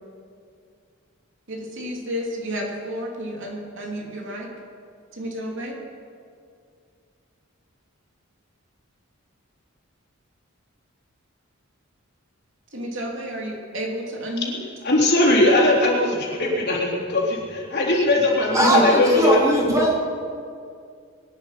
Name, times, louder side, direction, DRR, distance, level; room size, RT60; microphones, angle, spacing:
voice 1, 1.5-4.5 5.1-5.8 12.7-14.6 18.6-18.8 19.7-19.8, equal, 65° right, -1 dB, 3.0 m, -30 dB
voice 2, 14.8-19.4, left 1 dB, 55° left, -3 dB, 3.7 m, -19 dB
voice 3, 18.5-19.9, right 1 dB, 15° right, -3 dB, 3.3 m, -20 dB
23.0 x 10.0 x 5.8 m, 2.3 s
head